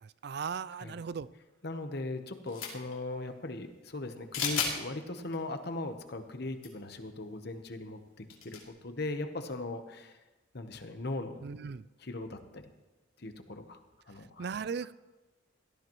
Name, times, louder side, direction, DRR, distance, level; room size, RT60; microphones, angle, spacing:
voice 1, 0.0-1.3 11.4-11.8 14.4-14.9, right 6 dB, 50° right, 18 dB, 0.3 m, -37 dB
voice 2, 1.6-10.2 10.5-11.4 12.0-12.7 13.2-13.8 14.1-14.5, left 2 dB, 50° left, 7 dB, 1.0 m, -39 dB
sound 1, 2.5-3.0 4.3-4.8 5.3-5.4 6.5-6.7 6.9-7.0 8.3-8.7, left 6 dB, 80° left, 2.9 m, -33 dB
17.5 x 13.5 x 3.1 m, 1.1 s
head